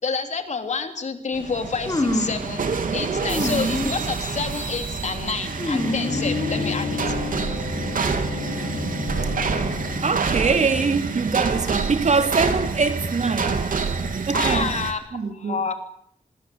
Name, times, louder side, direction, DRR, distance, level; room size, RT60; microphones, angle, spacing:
voice 1, 0.0-2.6 2.9-7.1 14.3-15.7, left 4 dB, 55° left, 3.4 m, -28 dB
sound 1, 1.3-14.9, right 5 dB, 70° right, 3.5 m, -27 dB
sound 2, 1.9-2.5 3.3-4.0 4.3-4.8 5.6-6.8, left 1 dB, 25° left, 4.8 m, -26 dB
Bowed string instrument, 5.8-10.4, left 6 dB, 80° left, 1.5 m, -32 dB
voice 2, 10.0-13.6 14.3-14.8 15.1-15.6, right 4 dB, 55° right, 2.7 m, -23 dB
26.5 x 22.0 x 8.0 m
wide cardioid pair, 145°, 14 cm